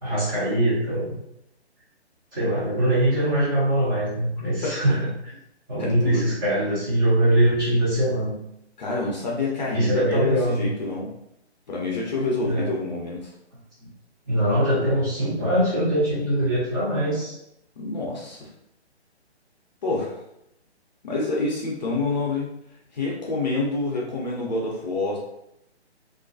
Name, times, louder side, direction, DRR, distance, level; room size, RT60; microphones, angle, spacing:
voice 1, 0.0-1.2 2.3-5.1 5.7-8.4 9.7-10.7 12.4-12.7 14.3-17.3, right 1 dB, 20° right, -9 dB, 0.7 m, -22 dB
voice 2, 5.8-6.3 8.8-11.1 11.7-13.3 17.8-18.5 19.8-20.2 21.0-22.5 22.9-25.2, left 2 dB, 40° left, -3 dB, 0.5 m, -27 dB
2.4 x 2.1 x 2.5 m, 0.80 s
figure-of-eight pair, 145°, 34 cm